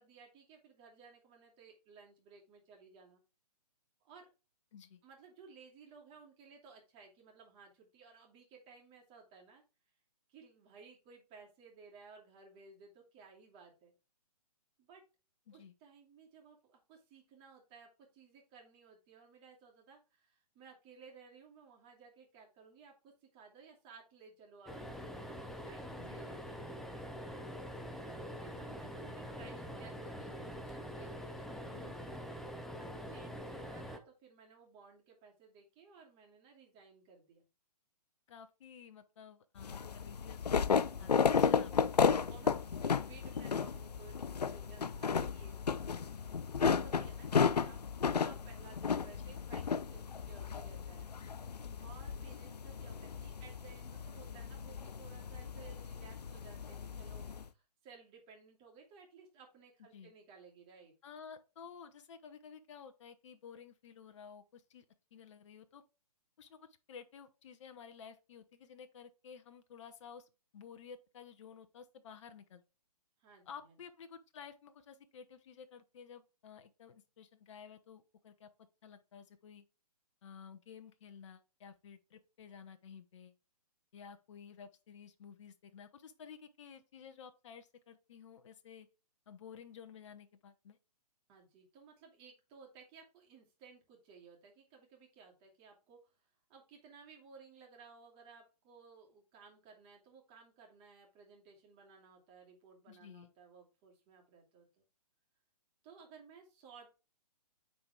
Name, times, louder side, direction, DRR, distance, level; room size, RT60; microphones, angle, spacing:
voice 1, 0.0-3.2 4.0-4.3 5.0-9.6 10.3-13.9 14.8-15.0 15.5-25.4 25.6-27.0 28.0-32.0 32.8-37.4 40.9-41.3 42.1-46.1 46.6-47.8 48.1-51.1 51.8-60.9 73.2-73.8 91.3-96.1 96.5-104.8 105.8-107.0, right 5 dB, 25° right, 2.4 m, -58 dB
sound 1, 24.7-34.0, equal, ahead, 0.5 m, -45 dB
voice 2, 38.3-40.4 40.7-42.1 49.1-49.4 51.6-51.9 59.9-60.1 61.0-64.8 65.1-65.8 66.4-72.6 73.5-79.6 80.2-83.3 83.9-88.9 89.3-90.8 102.9-103.3, left 7 dB, 50° left, 0.8 m, -53 dB
sound 2, 39.6-57.4, left 6 dB, 80° left, 0.5 m, -34 dB
9.5 x 4.1 x 3.4 m
figure-of-eight pair, 130°, 21 cm